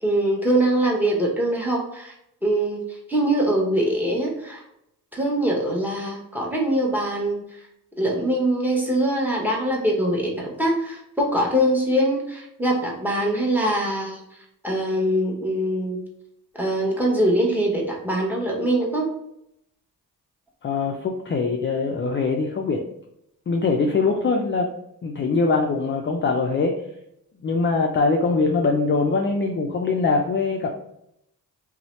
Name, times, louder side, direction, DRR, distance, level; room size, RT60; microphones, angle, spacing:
voice 1, 0.0-2.1 2.4-4.6 5.1-7.4 8.0-14.2 14.6-16.0 16.6-19.1, right 1 dB, 5° right, -1 dB, 0.8 m, -23 dB
voice 2, 20.6-22.8 23.5-24.7 25.0-26.7 27.4-30.7, left 4 dB, 30° left, 2 dB, 0.4 m, -22 dB
2.7 x 2.1 x 3.0 m, 0.79 s
cardioid pair, 60°, 40 cm